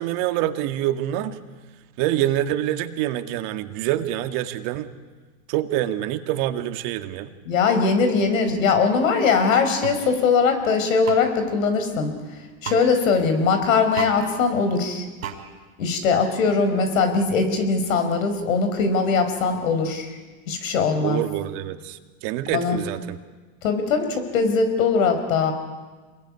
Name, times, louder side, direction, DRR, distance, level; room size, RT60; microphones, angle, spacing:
voice 1, 0.0-1.4 2.0-4.9 5.5-7.3 21.0-23.2, right 13 dB, 50° right, 7 dB, 2.1 m, -26 dB
voice 2, 7.5-12.1 12.6-15.0 15.8-20.1 20.5-21.2 22.5-22.8 23.6-25.5, left 5 dB, 75° left, 7 dB, 5.0 m, -21 dB
sound 1, 9.8-10.0 11.0-11.2 12.6-12.8 13.9-14.2 15.2-15.4, right 9 dB, 85° right, 5.0 m, -31 dB
27.0 x 21.5 x 9.8 m, 1.3 s
hypercardioid pair, 110°, 40 cm